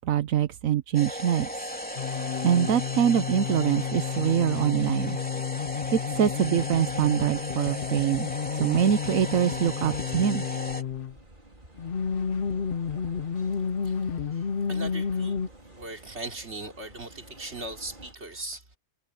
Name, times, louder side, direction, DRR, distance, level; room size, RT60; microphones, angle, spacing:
voice 1, 0.0-1.5 2.4-5.2 5.9-8.3 8.6-10.5, right 9 dB, 85° right, 1.2 m, -24 dB
sound 1, 0.9-10.8, equal, 5° left, 3.6 m, -36 dB
sound 2, 2.0-11.2 11.8-15.5, left 7 dB, 50° left, 0.8 m, -31 dB
sound 3, 6.8-18.1, right 1 dB, 40° right, 5.1 m, -53 dB
voice 2, 13.8-15.4 15.7-18.8, right 2 dB, 55° right, 3.7 m, -39 dB
omnidirectional pair, 1.4 m